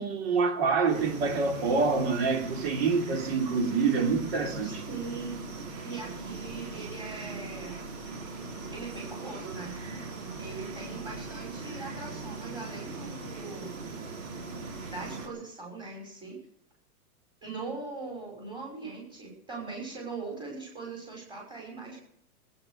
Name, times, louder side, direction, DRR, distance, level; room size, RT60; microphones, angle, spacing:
voice 1, 0.0-4.8, right 4 dB, 40° right, 3.3 m, -26 dB
sound 1, 0.9-15.3, right 3 dB, 55° right, 4.6 m, -40 dB
voice 2, 4.6-5.3 5.8-7.9 8.7-9.7 10.4-13.7 14.9-16.4 17.4-22.0, right 4 dB, 10° right, 5.9 m, -40 dB
19.5 x 9.5 x 6.7 m
hypercardioid pair, 165°, 45 cm